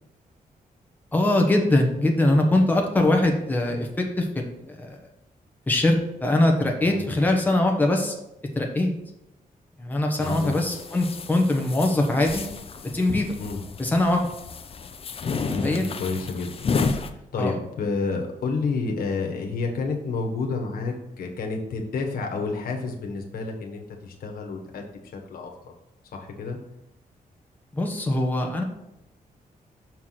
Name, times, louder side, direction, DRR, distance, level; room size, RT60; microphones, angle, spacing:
voice 1, 1.1-4.4 4.8-5.0 5.7-8.1 8.5-8.9 9.8-12.4 12.9-13.3 13.8-14.2 15.6-15.8 17.4-17.6 27.7-28.6, left 1 dB, 10° left, 2 dB, 1.2 m, -22 dB
voice 2, 10.2-10.6 13.4-13.6 15.4-24.8 25.1-25.7 26.1-26.6, left 4 dB, 85° left, 1 dB, 1.4 m, -30 dB
sound 1, 10.2-17.1, left 4 dB, 40° left, 0.6 m, -31 dB
6.4 x 4.7 x 5.9 m, 0.86 s
wide cardioid pair, 135°, 15 cm